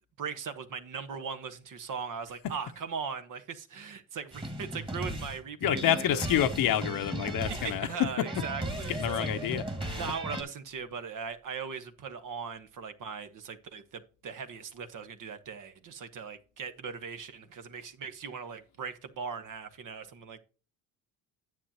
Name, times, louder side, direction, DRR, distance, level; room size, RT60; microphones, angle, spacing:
voice 1, 0.2-6.2 7.4-9.5 9.9-20.4, right 6 dB, 50° right, 1.2 m, -39 dB
sound 1, 4.3-10.4, right 1 dB, 15° right, 1.8 m, -36 dB
voice 2, 5.6-8.5 8.9-9.6, left 10 dB, 60° left, 0.9 m, -28 dB
9.7 x 7.6 x 2.9 m
supercardioid pair, 85°, 39 cm